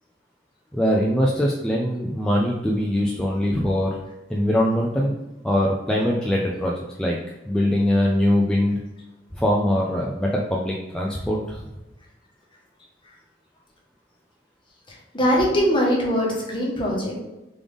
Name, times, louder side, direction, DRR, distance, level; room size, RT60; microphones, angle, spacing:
voice 1, 0.7-4.0 4.3-5.1 5.4-6.7 7.0-7.2 7.5-8.8 9.3-11.6, equal, 5° left, -3 dB, 0.4 m, -22 dB
voice 2, 14.9-17.2, equal, 25° left, -3 dB, 1.1 m, -22 dB
3.7 x 3.4 x 3.5 m, 1.0 s
head